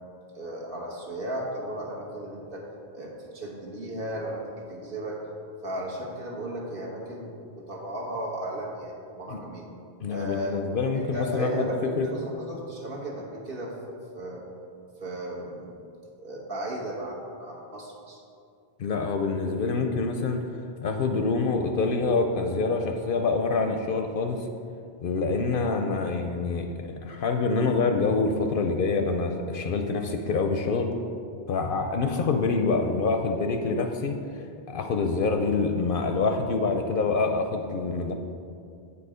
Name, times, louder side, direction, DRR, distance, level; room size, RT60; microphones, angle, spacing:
voice 1, 0.3-2.6 2.9-5.2 5.6-9.7 10.1-10.6 10.9-13.7 14.1-14.5 15.0-15.7 16.2-18.2, right 1 dB, 55° right, -3 dB, 1.4 m, -35 dB
voice 2, 10.0-11.7 12.0-12.1 18.8-20.4 20.8-24.5 25.0-30.9 31.5-34.2 34.7-38.1, left 4 dB, 60° left, 4 dB, 0.7 m, -26 dB
8.4 x 4.7 x 4.9 m, 2.5 s
omnidirectional pair, 1.1 m